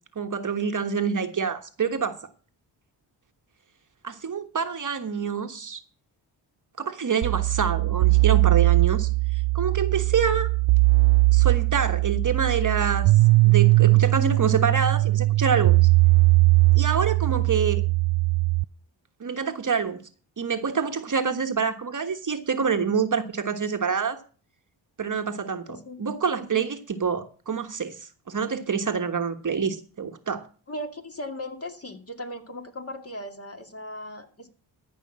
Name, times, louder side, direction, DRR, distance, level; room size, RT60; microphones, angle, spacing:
voice 1, 0.1-2.2 4.0-5.8 6.8-10.5 11.3-13.1 13.4-15.9 16.7-17.8 19.2-20.0 20.4-24.2 25.0-30.5, right 6 dB, 40° right, 1.3 m, -27 dB
sound 1, 7.2-18.6, right 22 dB, 75° right, 0.5 m, -20 dB
voice 2, 25.7-26.0 30.7-34.5, left 1 dB, 30° left, 2.4 m, -37 dB
14.0 x 5.5 x 7.5 m
cardioid pair, 70°, 47 cm